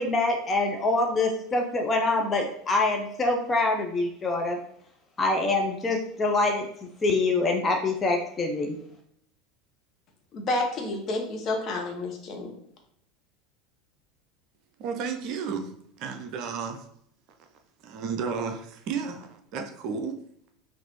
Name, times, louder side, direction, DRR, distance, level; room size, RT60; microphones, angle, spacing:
voice 1, 0.0-4.6 5.2-8.8, left 2 dB, 20° left, 3 dB, 0.6 m, -25 dB
voice 2, 10.3-12.6, left 2 dB, 40° left, 1 dB, 1.1 m, -30 dB
voice 3, 14.8-15.7 16.0-16.8 17.8-20.2, right 5 dB, 50° right, 5 dB, 0.5 m, -32 dB
5.9 x 2.6 x 3.0 m, 0.68 s
figure-of-eight pair, 75°, 0 cm